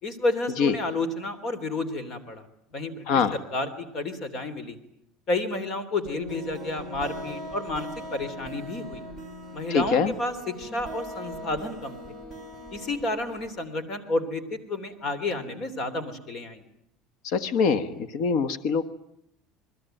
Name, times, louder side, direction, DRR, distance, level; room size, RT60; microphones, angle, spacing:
voice 1, 0.0-2.5 2.7-3.0 3.5-4.8 5.3-9.0 9.5-12.0 12.7-16.6, left 2 dB, 35° left, 14 dB, 3.3 m, -31 dB
voice 2, 3.1-3.4 9.7-10.1 17.2-18.8, left 6 dB, 55° left, 12 dB, 1.4 m, -24 dB
sound 1, 6.0-13.6, equal, 10° left, 7.6 m, -40 dB
28.5 x 21.5 x 9.2 m, 0.75 s
cardioid pair, 165°, 0 cm